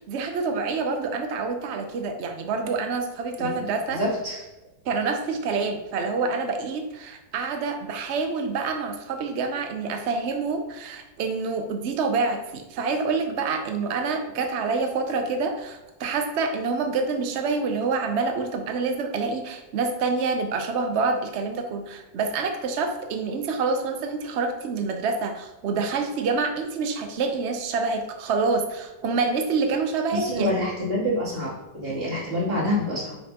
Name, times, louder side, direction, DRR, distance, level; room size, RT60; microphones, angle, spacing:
voice 1, 0.0-4.0 4.9-30.5, right 4 dB, 80° right, 5 dB, 0.6 m, -27 dB
voice 2, 3.9-4.4 30.1-33.2, left 1 dB, 30° right, -8 dB, 2.9 m, -27 dB
8.9 x 5.3 x 2.9 m, 1.0 s
omnidirectional pair, 2.0 m